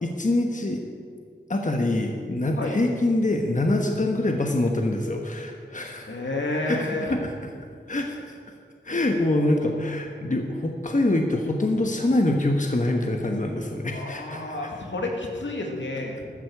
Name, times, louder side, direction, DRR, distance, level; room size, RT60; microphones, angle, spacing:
voice 1, 0.0-0.8 1.5-6.2 6.6-7.3 7.9-8.4 8.8-14.6, left 1 dB, 40° left, 2 dB, 1.3 m, -25 dB
voice 2, 6.1-7.2 9.7-9.8 13.9-16.3, left 2 dB, 75° left, 1 dB, 2.2 m, -30 dB
15.0 x 13.0 x 4.7 m, 2.3 s
wide cardioid pair, 60°, 19 cm